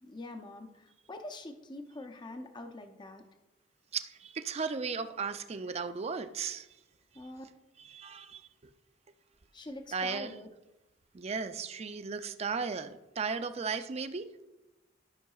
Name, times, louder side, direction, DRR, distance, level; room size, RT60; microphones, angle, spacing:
voice 1, 0.0-3.2 7.1-7.4 9.5-10.5, left 2 dB, 25° left, 0.6 m, -45 dB
voice 2, 3.9-6.7 7.8-8.4 9.9-10.4 11.1-14.3, right 5 dB, 35° right, 0.4 m, -35 dB
13.0 x 5.8 x 2.4 m
head